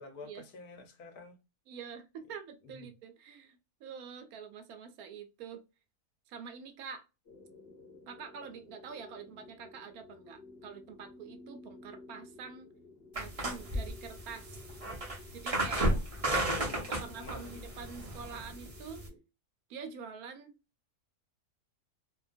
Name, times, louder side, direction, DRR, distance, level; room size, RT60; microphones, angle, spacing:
voice 1, 0.0-1.4 2.6-2.9 15.9-17.7, left 3 dB, 75° left, 1.2 m, -47 dB
voice 2, 1.7-5.6 6.3-7.1 8.1-12.7 13.2-14.6 15.3-15.9 16.6-19.0 19.7-20.6, right 6 dB, 75° right, 1.0 m, -46 dB
sound 1, 7.3-19.2, left 2 dB, 50° left, 0.9 m, -55 dB
sound 2, 13.1-19.1, right 1 dB, 35° right, 0.6 m, -34 dB
2.8 x 2.2 x 2.4 m
omnidirectional pair, 1.6 m